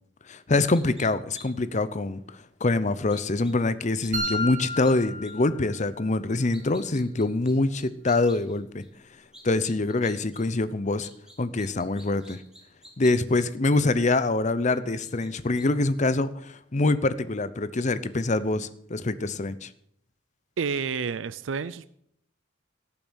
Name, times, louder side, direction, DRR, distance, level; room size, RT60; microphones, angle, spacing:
voice 1, 0.3-8.8 9.4-11.1 11.4-12.4 13.0-19.7, left 2 dB, 40° left, 15 dB, 0.7 m, -25 dB
sound 1, 0.7-1.1 1.3-1.5 1.8-1.9 3.1-3.5 4.0-4.3 4.6-4.9 5.2-5.3 6.3-8.6 8.8-8.9 9.3-10.4 10.7-13.4 14.1-14.2 15.0-15.3 15.6-15.7, equal, 5° right, 2.8 m, -50 dB
sound 2, 4.1-6.1, left 1 dB, 40° right, 2.3 m, -32 dB
voice 2, 20.6-21.9, right 5 dB, 75° right, 16 dB, 0.5 m, -29 dB
17.5 x 7.1 x 6.3 m, 0.68 s
head